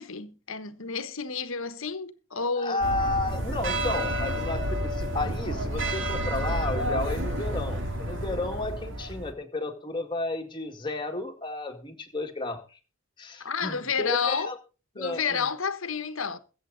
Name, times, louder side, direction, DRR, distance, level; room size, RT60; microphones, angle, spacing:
voice 1, 0.0-2.8 13.4-14.5 14.9-16.4, left 5 dB, 70° left, 1.3 m, -30 dB
voice 2, 2.6-12.8 13.2-14.6 15.0-15.5, left 2 dB, 20° left, 2.0 m, -32 dB
sound 1, 2.8-9.3, right 1 dB, 60° right, 2.5 m, -30 dB
22.5 x 7.9 x 4.0 m
head